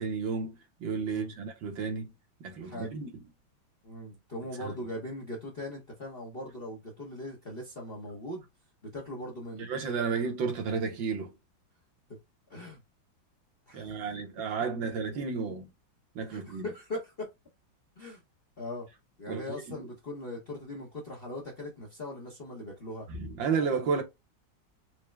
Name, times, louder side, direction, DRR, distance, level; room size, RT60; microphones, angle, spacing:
voice 1, 0.0-2.1 2.4-3.1 4.6-4.7 9.7-11.4 13.7-15.7 16.2-16.7 19.3-19.9 23.1-24.0, right 5 dB, 75° right, 1.7 m, -32 dB
voice 2, 2.6-3.0 3.8-8.4 8.9-9.7 12.1-12.2 12.5-12.8 13.7-14.2 16.3-17.3 18.0-18.2 18.6-18.9 19.2-23.1, left 1 dB, 40° left, 0.8 m, -40 dB
4.6 x 2.1 x 3.2 m
omnidirectional pair, 2.2 m